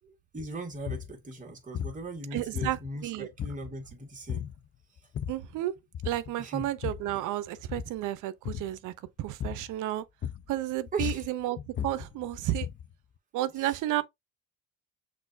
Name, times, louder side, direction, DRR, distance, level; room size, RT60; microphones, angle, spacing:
voice 1, 0.0-4.5 6.4-6.7 10.9-11.3 13.5-14.0, right 2 dB, 25° right, 1.8 m, -39 dB
sound 1, 0.9-1.1 1.7-2.0 2.5-3.1 3.4-3.9 4.3-4.6 5.0-5.5 5.9-6.3 6.6-7.2 7.6-8.0 8.4-8.8 9.4-9.7 10.2-10.6 10.9-12.9, left 9 dB, 40° left, 0.5 m, -36 dB
voice 2, 2.3-3.3 5.3-5.7 6.0-8.9 9.2-10.0 10.5-12.7 13.3-14.0, right 14 dB, 90° right, 0.5 m, -32 dB
6.0 x 2.5 x 2.5 m
cardioid pair, 90°, 30 cm